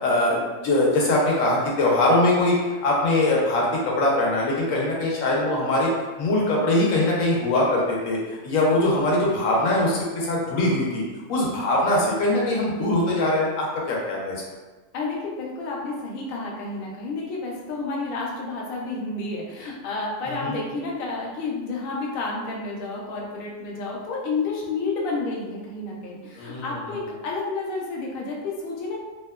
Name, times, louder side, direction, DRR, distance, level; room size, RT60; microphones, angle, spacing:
voice 1, 0.0-2.5 2.8-5.9 6.2-11.0 11.3-14.4 20.3-20.6 26.4-26.6, left 1 dB, 80° left, -3 dB, 1.1 m, -22 dB
voice 2, 14.9-29.0, left 3 dB, 60° left, -2 dB, 0.6 m, -30 dB
2.8 x 2.1 x 2.2 m, 1.2 s
omnidirectional pair, 1.4 m